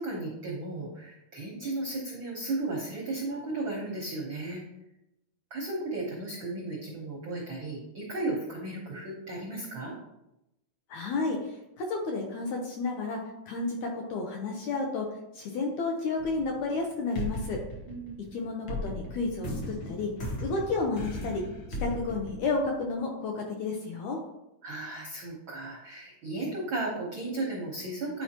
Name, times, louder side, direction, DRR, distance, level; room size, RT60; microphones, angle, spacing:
voice 1, 0.0-4.6 5.5-10.0 17.9-18.3 24.6-28.2, right 2 dB, 75° right, -3 dB, 1.1 m, -35 dB
voice 2, 10.9-11.4 11.8-13.2 13.5-15.1 15.3-17.6 18.3-20.1 20.4-21.4 21.8-24.2, left 3 dB, 75° left, 1 dB, 1.8 m, -31 dB
sound 1, 16.2-16.8 17.1-23.0, equal, 90° left, 1.0 m, -37 dB
10.0 x 4.7 x 2.9 m, 0.90 s
omnidirectional pair, 4.0 m